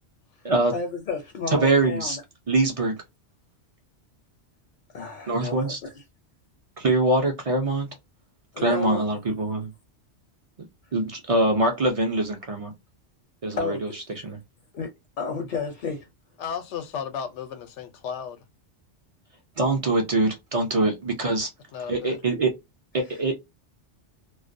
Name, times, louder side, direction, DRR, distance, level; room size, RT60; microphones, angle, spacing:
voice 1, 0.7-2.2 4.9-5.9 8.5-9.0 13.6-13.9 14.7-14.9 15.2-16.1, left 5 dB, 55° left, 0.6 m, -31 dB
voice 2, 1.5-2.2 2.5-2.9 5.3-5.8 6.8-7.9 8.6-9.7 10.9-12.7 13.4-14.4 19.6-21.5 21.9-22.5 22.9-23.4, right 2 dB, 50° right, 0.4 m, -23 dB
voice 3, 16.4-18.4 21.7-22.2, left 7 dB, 90° left, 0.9 m, -34 dB
2.3 x 2.1 x 2.5 m
omnidirectional pair, 1.2 m